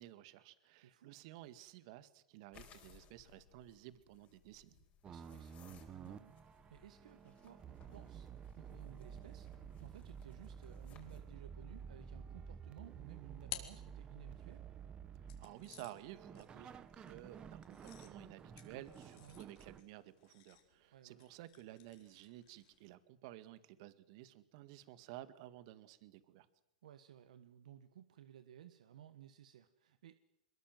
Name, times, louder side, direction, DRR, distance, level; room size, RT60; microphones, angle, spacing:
voice 1, 0.0-4.8 15.2-26.5, right 15 dB, 55° right, 13 dB, 1.9 m, -54 dB
voice 2, 0.8-1.2 5.1-14.7 19.2-19.4 20.9-21.2 26.8-30.1, right 10 dB, 75° right, 11 dB, 1.3 m, -58 dB
sound 1, 2.5-11.3, left 8 dB, 35° left, 4.8 m, -65 dB
sound 2, 5.0-19.8, right 7 dB, 25° right, 1.5 m, -52 dB
sound 3, 12.8-14.6 15.3-22.9, left 14 dB, 55° left, 3.9 m, -55 dB
22.5 x 21.5 x 7.7 m, 0.85 s
hypercardioid pair, 120°, 4 cm